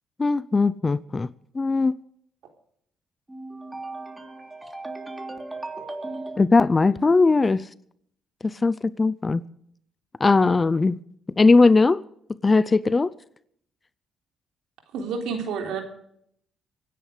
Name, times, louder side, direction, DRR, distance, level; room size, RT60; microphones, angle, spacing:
voice 1, 0.2-1.3 1.6-1.9 6.4-7.6 8.6-9.4 10.2-11.0 11.4-12.0 12.4-13.1, left 3 dB, 25° left, 0.6 m, -19 dB
voice 2, 3.3-6.4, right 2 dB, 15° right, 3.1 m, -36 dB
voice 3, 14.9-15.8, right 5 dB, 85° right, 3.5 m, -29 dB
24.5 x 10.0 x 5.1 m
cardioid pair, 90°, 0 cm